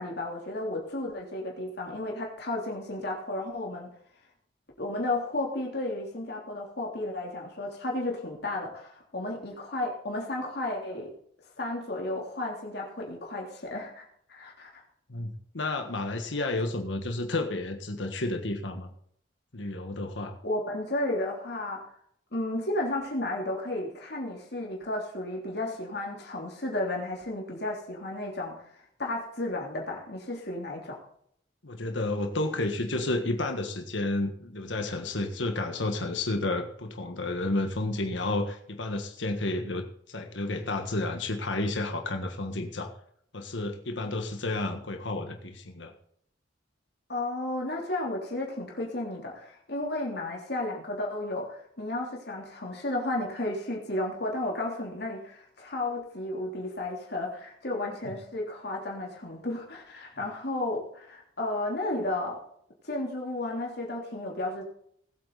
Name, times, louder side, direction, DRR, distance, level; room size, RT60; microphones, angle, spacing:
voice 1, 0.0-3.9 4.8-11.1 11.6-14.8 20.4-21.8 22.3-31.0 47.1-62.4 62.8-64.6, left 2 dB, 60° left, -1 dB, 3.3 m, -33 dB
voice 2, 15.1-18.9 19.5-20.3 31.6-42.9 43.3-45.9 58.1-58.2, left 2 dB, 80° left, 4 dB, 1.6 m, -31 dB
19.5 x 8.4 x 4.1 m, 0.67 s
head